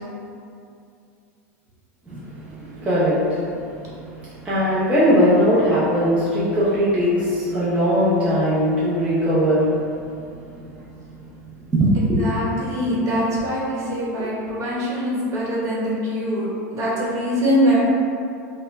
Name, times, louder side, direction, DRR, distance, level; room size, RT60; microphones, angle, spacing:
voice 1, 2.1-10.1 10.5-10.6 11.2-11.3 11.7-12.3, equal, 15° right, -11 dB, 0.7 m, -20 dB
voice 2, 12.0-16.5 16.7-17.8, equal, 40° right, -7 dB, 1.1 m, -23 dB
4.2 x 2.1 x 2.5 m, 2.5 s
supercardioid pair, 115°, 8 cm